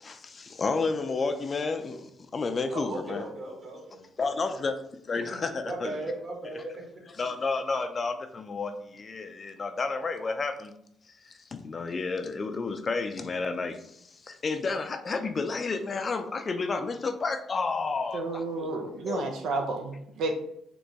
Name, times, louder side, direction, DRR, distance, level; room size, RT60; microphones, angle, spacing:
voice 1, 0.0-3.2 4.2-5.9 6.5-6.6 7.2-10.7 11.2-18.7 19.0-19.2, left 4 dB, 40° left, 8 dB, 0.4 m, -31 dB
voice 2, 2.7-4.0 5.1-5.2 5.6-6.8, right 2 dB, 45° right, -1 dB, 1.6 m, -37 dB
voice 3, 18.1-20.3, right 3 dB, 80° right, 3 dB, 0.5 m, -31 dB
4.0 x 2.9 x 3.5 m, 0.73 s
cardioid pair, 90°, 0 cm